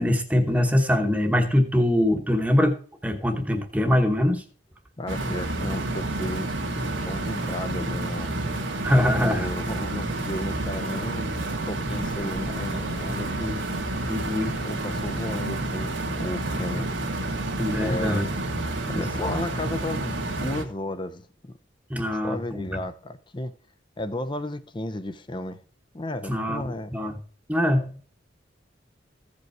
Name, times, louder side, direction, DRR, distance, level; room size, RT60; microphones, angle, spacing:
voice 1, 0.0-2.8 3.0-4.4 8.8-9.5 14.1-14.6 16.7-16.8 17.6-18.3 18.9-19.0 21.9-22.6 26.3-26.6 26.9-27.1 27.5-27.9, left 1 dB, 10° right, 1.1 m, -23 dB
voice 2, 5.0-6.5 7.0-8.4 9.2-11.4 11.6-13.7 14.6-16.9 17.8-18.4 18.9-21.6 22.1-23.5 24.0-25.6 25.9-26.9, left 1 dB, 25° left, 0.6 m, -33 dB
sound 1, 5.1-20.6, right 2 dB, 90° right, 1.7 m, -29 dB
15.0 x 5.3 x 4.6 m
head